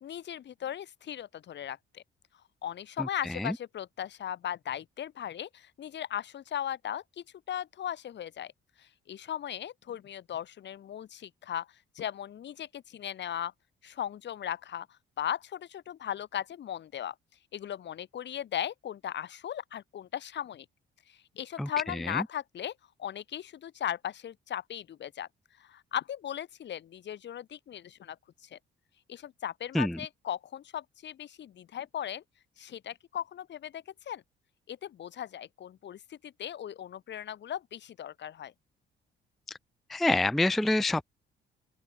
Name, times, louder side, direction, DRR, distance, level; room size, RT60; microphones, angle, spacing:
voice 1, 0.0-2.0 2.6-8.5 8.8-11.7 12.0-13.5 13.8-14.9 15.2-17.1 17.5-20.7 21.1-22.7 23.0-25.3 25.6-28.2 28.5-28.6 29.1-32.2 32.6-34.2 34.7-38.5, left 10 dB, 65° left, 2.0 m, -37 dB
voice 2, 39.9-41.1, left 2 dB, ahead, 0.3 m, -26 dB
open air
cardioid pair, 90°, 20 cm